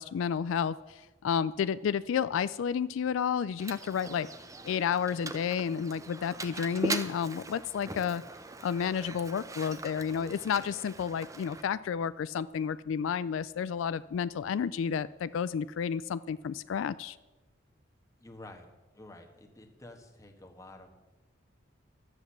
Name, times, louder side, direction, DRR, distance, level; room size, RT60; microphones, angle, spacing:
voice 1, 0.0-4.3 4.6-8.2 8.6-17.2, left 7 dB, 80° left, 16 dB, 0.3 m, -31 dB
Mechanisms, 3.6-11.6, right 2 dB, 15° right, 0.6 m, -40 dB
voice 2, 18.2-18.7 18.9-20.9, left 2 dB, 15° left, 3 dB, 1.3 m, -50 dB
12.0 x 8.0 x 7.2 m, 1.2 s
head